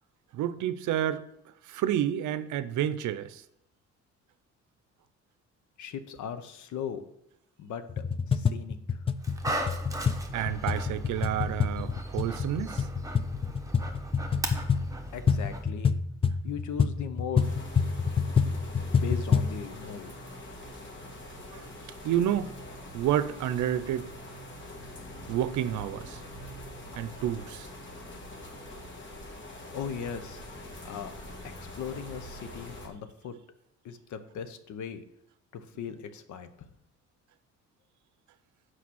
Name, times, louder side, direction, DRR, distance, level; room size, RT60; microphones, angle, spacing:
voice 1, 0.3-1.3 1.7-3.4 10.3-12.9 21.5-21.7 22.0-22.5 22.9-24.1 25.3-26.2 27.0-27.7, right 11 dB, 75° right, 0.6 m, -29 dB
voice 2, 5.8-7.0 7.6-9.0 15.1-16.0 16.4-17.5 19.0-20.1 29.7-30.4 30.8-31.1 31.4-33.4 33.8-35.0 35.5-36.7, left 7 dB, 75° left, 0.8 m, -38 dB
sound 1, 7.9-19.6, left 6 dB, 20° left, 0.3 m, -28 dB
Dog, 9.2-15.6, right 1 dB, 10° right, 0.9 m, -38 dB
sound 2, 17.4-32.9, left 1 dB, 40° left, 1.6 m, -44 dB
6.0 x 4.8 x 6.2 m
cardioid pair, 90°, 30 cm